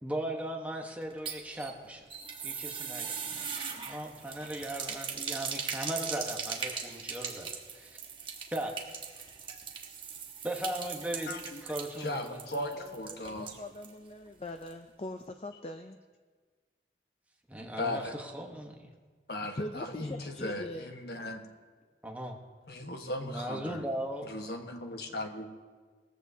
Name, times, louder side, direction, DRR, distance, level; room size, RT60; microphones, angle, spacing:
voice 1, 0.0-2.0 2.4-7.9 8.5-8.7 10.4-11.3 11.6-12.4 17.5-18.7 22.0-22.4 23.2-24.3, right 1 dB, 10° right, 1 dB, 1.1 m, -38 dB
sound 1, 1.0-14.0 14.3-14.4 14.7-14.8, right 6 dB, 30° right, 1.2 m, -40 dB
voice 2, 11.3-11.6 12.0-13.5 17.6-18.1 19.3-21.4 22.7-23.9 24.3-25.5, left 1 dB, 65° left, 4 dB, 1.3 m, -37 dB
voice 3, 12.6-16.0 19.4-20.9, left 1 dB, 35° left, 6 dB, 0.5 m, -42 dB
19.0 x 14.5 x 2.8 m, 1.5 s
head